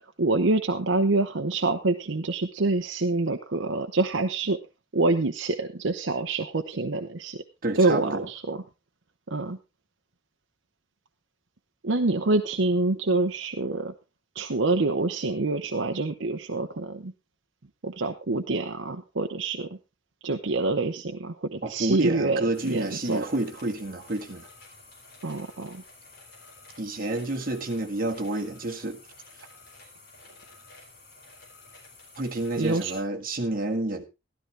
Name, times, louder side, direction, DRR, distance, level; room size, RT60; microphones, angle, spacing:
voice 1, 0.2-4.6 4.9-7.4 7.8-8.6 9.3-9.6 11.8-13.9 14.4-17.1 17.8-19.7 20.2-23.2 25.2-25.8 32.6-32.9, right 2 dB, 70° right, 0.8 m, -26 dB
voice 2, 7.6-8.3 21.6-24.5 26.8-29.0 32.1-34.0, right 2 dB, 50° right, 1.7 m, -29 dB
sound 1, 22.5-33.0, left 3 dB, 55° left, 4.7 m, -51 dB
13.0 x 12.5 x 3.3 m
head